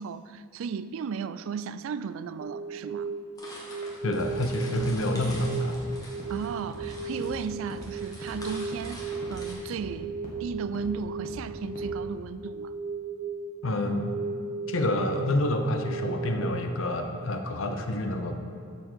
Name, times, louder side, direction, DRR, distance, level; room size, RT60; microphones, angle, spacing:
voice 1, 0.0-3.1 6.3-12.7, right 6 dB, 70° right, 14 dB, 0.3 m, -35 dB
sound 1, 2.4-16.5, right 4 dB, 25° right, 0.6 m, -36 dB
sound 2, 3.4-9.5, left 1 dB, 15° left, 1.6 m, -46 dB
voice 2, 4.0-5.8 13.6-14.2 14.7-18.4, left 1 dB, 65° left, 5 dB, 0.7 m, -28 dB
sound 3, 4.2-4.3 4.7-4.8 5.2-5.3 5.7-5.8 6.2-6.3 6.7-6.8 7.2-7.3 7.7-7.8 8.2-8.3 8.7-8.8 9.2-9.3 9.7-9.8 10.2-10.3 10.7-10.8 11.2-11.3 11.7-11.8, equal, 40° left, 1.6 m, -42 dB
12.0 x 4.5 x 4.6 m, 2.5 s
head